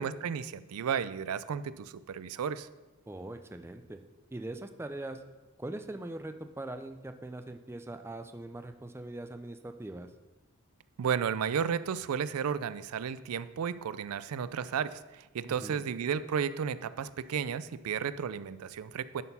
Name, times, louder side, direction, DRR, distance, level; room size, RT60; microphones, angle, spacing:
voice 1, 0.0-2.7 11.0-19.2, right 7 dB, 90° right, 15 dB, 0.4 m, -33 dB
voice 2, 3.1-4.0 4.3-5.2 5.6-10.1 15.5-15.9, right 2 dB, 10° right, 8 dB, 0.4 m, -41 dB
11.0 x 4.3 x 5.5 m, 1.1 s
head